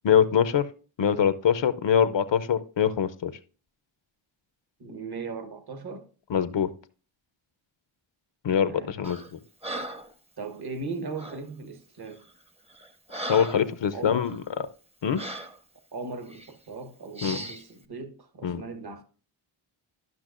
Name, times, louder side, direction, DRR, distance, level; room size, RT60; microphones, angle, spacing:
voice 1, 0.0-0.7 1.0-3.3 6.3-6.7 8.4-9.4 13.3-14.4 15.0-15.2 17.2-17.4 18.4-18.6, left 8 dB, 60° left, 0.6 m, -23 dB
voice 2, 4.8-6.1 8.5-9.0 10.4-12.2 13.9-14.3 15.9-19.0, right 3 dB, 50° right, 1.2 m, -38 dB
Breathing, 9.0-9.3 9.6-10.1 11.2-11.4 12.1-12.3 12.7-13.7 14.2-14.4 15.2-15.6 16.3-16.5 17.2-17.6, right 1 dB, 15° right, 0.7 m, -37 dB
12.5 x 5.8 x 2.5 m
cardioid pair, 60°, 49 cm